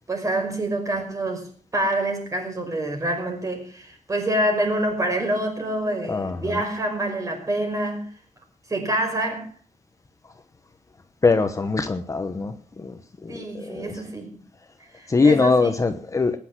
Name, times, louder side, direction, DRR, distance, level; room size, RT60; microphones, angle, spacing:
voice 1, 0.1-8.1 8.7-9.5 13.3-14.4 14.9-15.7, right 1 dB, 25° right, 4 dB, 5.5 m, -26 dB
voice 2, 6.1-6.6 11.2-14.0 15.1-16.4, left 4 dB, 25° left, 8 dB, 1.0 m, -22 dB
20.5 x 10.5 x 6.1 m, 0.42 s
wide cardioid pair, 180°, 13 cm